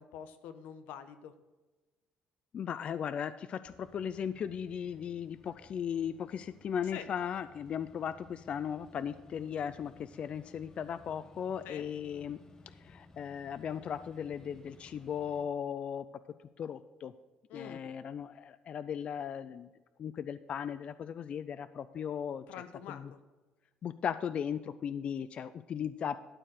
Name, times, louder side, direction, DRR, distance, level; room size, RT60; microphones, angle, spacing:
voice 1, 0.0-1.3 6.9-7.0 11.6-11.8 17.5-17.8 22.5-23.0, left 8 dB, 85° left, 10 dB, 0.9 m, -45 dB
voice 2, 2.5-12.4 12.7-16.1 16.6-17.1 17.5-19.7 20.0-22.4 22.9-23.1 23.8-26.2, left 8 dB, 40° left, 14 dB, 0.3 m, -37 dB
sound 1, 3.6-15.4, left 2 dB, 25° left, 1.0 m, -58 dB
12.5 x 4.6 x 6.4 m, 1.2 s
cardioid pair, 140°, 3 cm